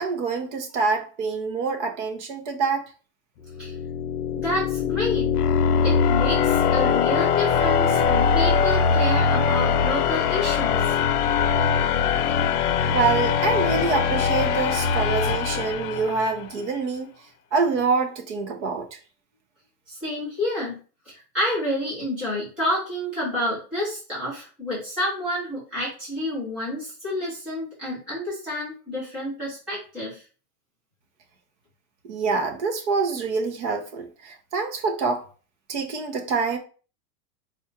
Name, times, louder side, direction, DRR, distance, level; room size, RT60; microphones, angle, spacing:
voice 1, 0.0-2.8 12.9-17.1 17.5-18.9 32.1-35.2 35.7-36.6, right 4 dB, 50° right, 0.9 m, -26 dB
sound 1, 3.5-16.4, left 6 dB, 70° left, 0.7 m, -22 dB
voice 2, 4.4-5.3 5.8-11.0 19.9-20.8 21.0-30.2, left 1 dB, 5° right, 0.4 m, -29 dB
4.2 x 2.4 x 4.4 m
supercardioid pair, 175°, 46 cm